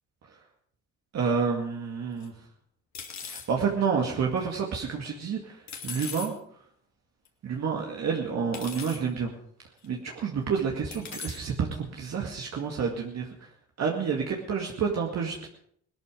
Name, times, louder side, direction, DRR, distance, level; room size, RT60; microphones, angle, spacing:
voice 1, 1.1-2.3 3.2-5.6 5.8-6.3 7.4-9.3 9.8-13.3 13.8-15.5, right 6 dB, 60° right, 0 dB, 2.2 m, -29 dB
sound 1, 2.2-2.3 2.9-3.5 5.7-6.3 7.3-7.4 8.5-9.0 9.8-9.9 10.9-11.4, left 6 dB, 65° left, 2.8 m, -39 dB
18.0 x 13.0 x 5.1 m, 0.64 s
cardioid pair, 90°, 30 cm